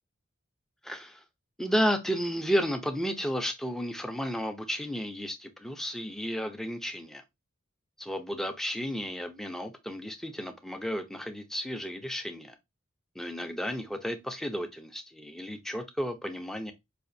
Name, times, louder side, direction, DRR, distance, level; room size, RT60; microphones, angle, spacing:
voice 1, 0.8-1.2 1.6-7.2 8.0-12.6 13.2-16.7, equal, ahead, 0.4 m, -32 dB
4.9 x 2.5 x 2.5 m
head